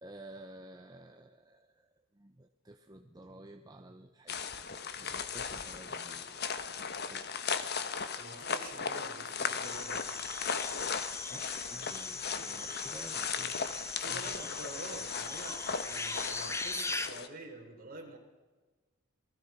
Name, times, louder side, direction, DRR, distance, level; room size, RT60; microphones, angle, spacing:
voice 1, 0.0-1.9 2.1-4.4 4.8-6.6 6.9-7.4 11.3-13.7 14.1-14.4, right 1 dB, 15° right, 5 dB, 0.8 m, -52 dB
sound 1, 4.3-17.3, left 6 dB, 45° left, 1.3 m, -37 dB
voice 2, 8.2-10.2 14.0-18.2, right 2 dB, 40° right, 1 dB, 4.5 m, -47 dB
sound 2, 9.6-17.1, left 3 dB, 15° left, 0.9 m, -40 dB
28.0 x 19.5 x 5.9 m, 1.3 s
head